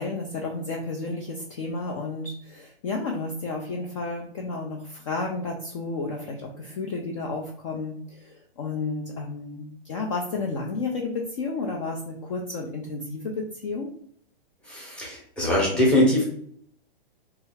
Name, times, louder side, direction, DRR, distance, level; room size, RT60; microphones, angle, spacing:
voice 1, 0.0-13.9, left 3 dB, 35° left, 0 dB, 0.4 m, -32 dB
voice 2, 14.7-16.2, left 1 dB, 5° left, -4 dB, 0.7 m, -22 dB
3.0 x 2.3 x 3.2 m, 0.62 s
hypercardioid pair, 155°, 29 cm